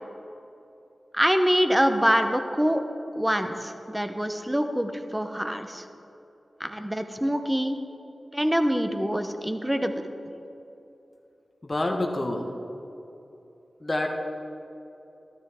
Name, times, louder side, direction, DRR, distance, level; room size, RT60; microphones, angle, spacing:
voice 1, 1.1-2.8 3.1-5.8 6.6-7.8 8.3-10.0, equal, 10° right, 7 dB, 0.9 m, -25 dB
voice 2, 11.6-12.5 13.8-14.1, left 1 dB, 30° left, 2 dB, 1.4 m, -27 dB
13.0 x 13.0 x 3.7 m, 2.9 s
wide cardioid pair, 65°, 0 cm